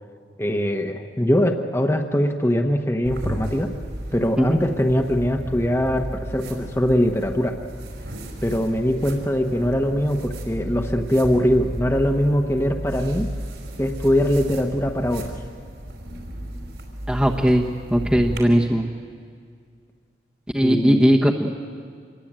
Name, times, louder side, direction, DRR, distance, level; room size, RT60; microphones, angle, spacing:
voice 1, 0.4-3.7 4.1-7.6 8.4-13.3 13.8-15.3 20.6-21.1, equal, 15° left, 4 dB, 1.2 m, -22 dB
sound 1, 3.0-18.4, right 1 dB, 80° right, 5.1 m, -34 dB
voice 2, 17.1-17.6 17.9-18.8 20.5-21.5, equal, 5° right, -2 dB, 1.1 m, -18 dB
27.0 x 22.0 x 9.0 m, 2.1 s
head